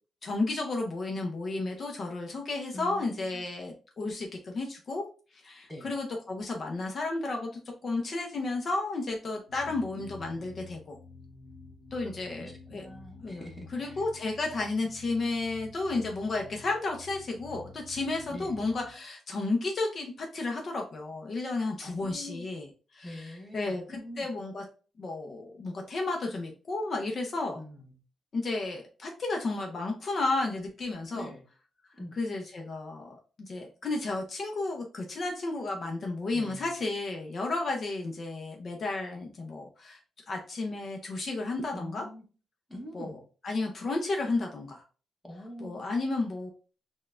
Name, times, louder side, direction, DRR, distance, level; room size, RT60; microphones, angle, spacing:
voice 1, 0.2-5.1 5.3-7.5 7.8-11.0 11.9-12.9 13.2-13.4 13.7-24.6 25.0-27.6 28.3-31.3 32.2-33.1 33.5-40.0 40.3-42.0 42.9-43.2 43.4-44.8 45.6-46.5, left 3 dB, 35° left, 1 dB, 0.5 m, -32 dB
voice 2, 2.7-3.5 5.7-5.9 9.9-10.0 12.4-14.0 18.3-18.6 21.8-22.5 23.0-24.3 27.5-28.0 31.1-31.4 32.0-32.2 36.3-36.8 41.7-42.2 42.7-43.2 45.2-45.9, left 1 dB, ahead, 0 dB, 0.8 m, -44 dB
sound 1, 9.5-18.9, left 3 dB, 65° left, 1.0 m, -50 dB
6.1 x 2.2 x 2.4 m, 0.37 s
wide cardioid pair, 175°, 0 cm